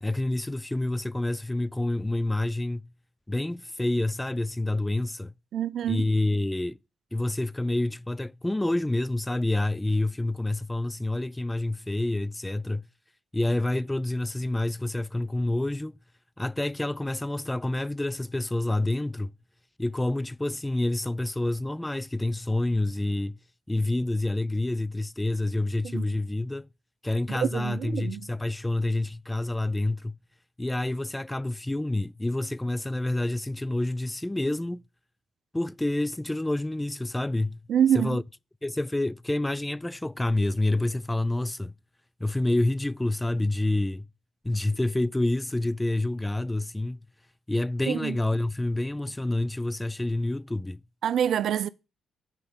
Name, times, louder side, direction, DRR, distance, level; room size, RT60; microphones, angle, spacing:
voice 1, 0.0-2.8 3.3-5.3 5.9-6.8 7.1-12.8 13.3-16.0 16.4-19.3 19.8-23.4 23.7-26.7 27.0-30.1 30.6-34.8 35.5-37.6 37.9-38.2 38.6-41.7 42.2-44.1 44.4-47.0 47.5-50.8, left 2 dB, 15° left, 0.3 m, -28 dB
voice 2, 5.5-6.1 25.8-26.0 27.3-28.3 37.7-38.2 47.9-48.2 51.0-51.7, right 9 dB, 65° right, 0.4 m, -26 dB
8.3 x 4.6 x 5.2 m
hypercardioid pair, 50°, 0 cm